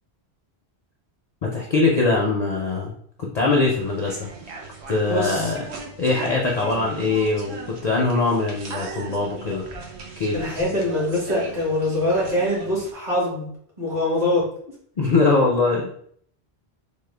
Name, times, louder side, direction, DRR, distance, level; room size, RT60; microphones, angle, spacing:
voice 1, 1.4-4.3 4.9-5.6 6.0-9.7 10.2-10.4 15.0-15.9, left 3 dB, 50° left, -1 dB, 0.5 m, -22 dB
sound 1, 3.6-12.9, right 4 dB, 80° right, 0.9 m, -38 dB
voice 2, 5.1-5.5 10.3-13.5 13.8-14.5, left 1 dB, 40° right, -5 dB, 1.5 m, -23 dB
3.5 x 2.1 x 3.2 m, 0.63 s
omnidirectional pair, 1.1 m